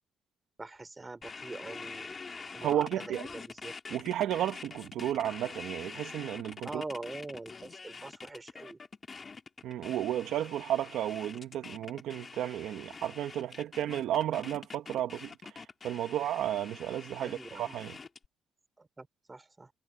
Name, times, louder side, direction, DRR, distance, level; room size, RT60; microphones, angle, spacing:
voice 1, 0.6-2.2 2.5-3.7 6.6-8.8 17.2-17.8 18.8-19.7, right 3 dB, 20° right, 4.1 m, -43 dB
sound 1, 1.2-18.3, left 4 dB, 35° left, 2.8 m, -46 dB
voice 2, 2.6-3.3 3.9-6.8 9.6-18.0, right 11 dB, 80° right, 1.7 m, -33 dB
cardioid pair, 90°, 0 cm